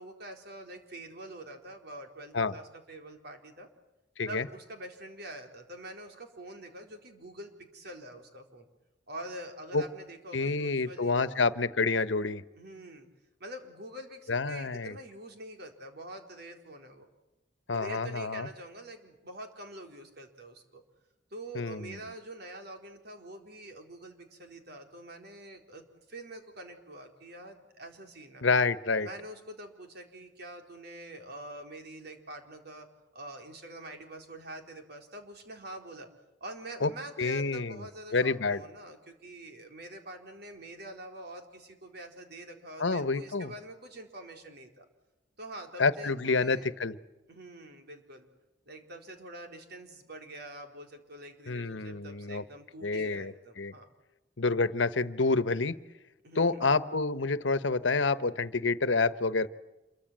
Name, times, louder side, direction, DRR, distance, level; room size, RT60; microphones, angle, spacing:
voice 1, 0.0-3.7 4.3-8.7 9.1-11.5 12.6-13.1 13.4-17.1 17.7-20.8 21.3-28.4 29.0-32.9 33.1-36.1 36.4-44.8 45.4-46.8 47.3-48.3 48.7-53.9 56.2-56.8, right 1 dB, 60° right, 4 dB, 4.3 m, -45 dB
voice 2, 10.3-12.4 14.3-15.0 17.7-18.5 21.5-22.0 28.4-29.1 36.8-36.9 37.2-37.8 38.1-38.6 42.8-43.5 45.8-47.0 51.5-52.4 52.8-53.7 54.4-55.8 56.4-59.5, left 3 dB, 90° left, 14 dB, 1.2 m, -28 dB
27.5 x 23.0 x 7.6 m, 0.99 s
head